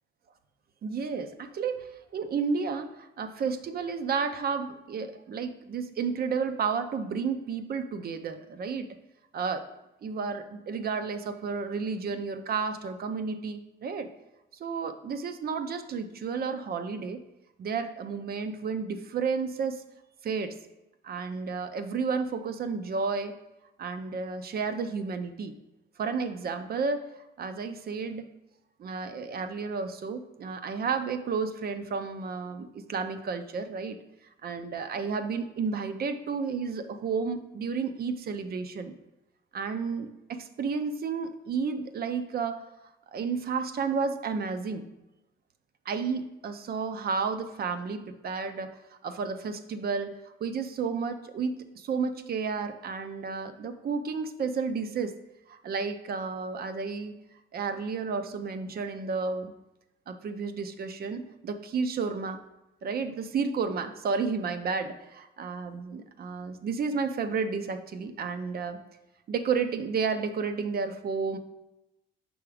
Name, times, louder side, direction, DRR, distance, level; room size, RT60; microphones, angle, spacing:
voice 1, 0.8-8.9 9.3-9.6 10.0-14.1 14.6-17.2 17.6-19.8 20.2-20.6 21.0-23.3 23.8-25.5 26.0-27.1 27.4-28.3 28.8-34.0 34.4-38.9 39.5-42.6 43.1-44.9 45.9-48.7 49.0-55.1 55.5-57.1 57.5-59.5 60.1-62.4 62.8-68.8 69.3-71.4, right 5 dB, 50° right, 9 dB, 0.6 m, -32 dB
5.9 x 3.5 x 4.9 m, 0.95 s
cardioid pair, 90°, 20 cm